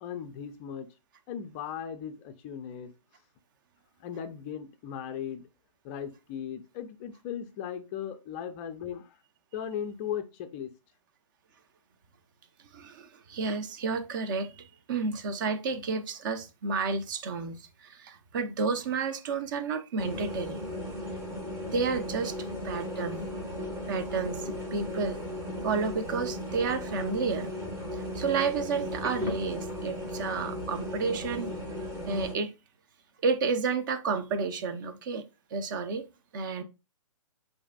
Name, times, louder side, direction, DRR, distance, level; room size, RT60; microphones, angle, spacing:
voice 1, 0.0-0.9 1.3-2.9 4.0-5.4 5.8-9.2 9.5-10.7, left 8 dB, 20° left, 0.4 m, -37 dB
voice 2, 12.7-20.6 21.7-22.3 22.6-23.2 23.9-25.2 25.6-27.5 27.9-31.5 32.0-32.5 33.2-35.2 35.5-36.1 36.3-36.6, right 4 dB, 35° right, 0.6 m, -31 dB
sound 1, 20.0-32.3, left 1 dB, 15° right, 1.1 m, -36 dB
6.9 x 2.6 x 2.2 m
figure-of-eight pair, 125°, 18 cm